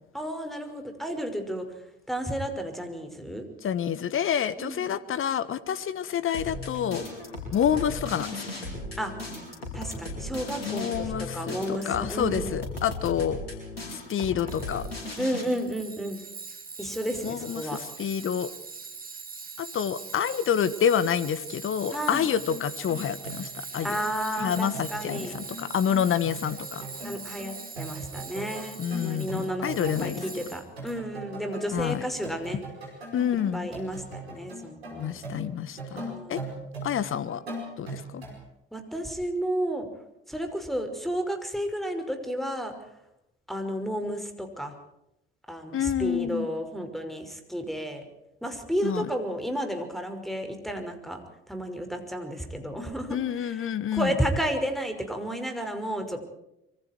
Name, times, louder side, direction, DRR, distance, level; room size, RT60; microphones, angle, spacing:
voice 1, 0.1-1.6 2.1-3.5 4.6-4.9 9.0-9.1 9.7-11.1 11.3-12.6 15.2-16.2 16.8-17.8 21.9-22.3 23.8-25.4 27.0-32.6 33.5-35.1 36.1-36.5 38.7-39.9 40.3-42.7 43.5-44.7 45.5-48.0 48.4-51.2 51.5-53.2 53.5-53.6 53.9-56.2, equal, ahead, 6 dB, 5.5 m, -32 dB
voice 2, 3.6-7.1 7.5-8.5 10.6-13.4 13.9-14.9 17.2-18.5 19.6-24.0 24.4-26.9 28.8-30.4 31.7-32.1 33.1-33.7 34.9-36.4 36.8-37.4 37.8-38.2 45.7-46.5 48.8-49.1 53.1-54.2, left 8 dB, 45° left, 16 dB, 1.4 m, -28 dB
sound 1, 6.3-15.4, left 2 dB, 85° left, 4.8 m, -37 dB
Tools, 14.5-30.9, right 4 dB, 30° right, 3.9 m, -42 dB
sound 2, 22.1-38.4 38.7-38.8, right 2 dB, 85° right, 5.1 m, -41 dB
26.0 x 24.0 x 4.6 m, 0.85 s
figure-of-eight pair, 50°, 30 cm